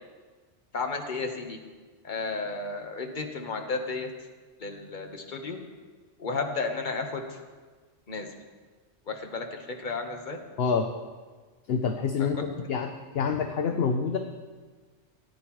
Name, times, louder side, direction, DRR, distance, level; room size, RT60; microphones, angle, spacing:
voice 1, 0.7-1.6 2.0-4.1 4.6-5.6 6.2-7.4 8.1-8.3 9.1-10.4 12.2-12.3, left 4 dB, 45° left, 4 dB, 1.2 m, -33 dB
voice 2, 11.7-12.9 13.1-14.2, left 6 dB, 60° left, 5 dB, 0.9 m, -27 dB
17.5 x 9.5 x 3.1 m, 1.4 s
omnidirectional pair, 1.2 m